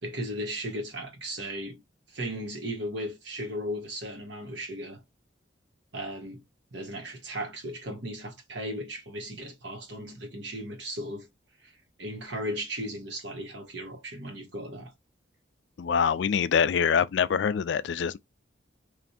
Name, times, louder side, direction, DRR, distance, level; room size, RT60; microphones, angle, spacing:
voice 1, 0.0-1.8 2.1-5.0 5.9-6.4 6.7-11.3 11.6-14.9, equal, 70° right, 1.4 m, -36 dB
voice 2, 15.8-18.2, left 7 dB, 70° left, 0.3 m, -25 dB
3.3 x 2.6 x 4.1 m
head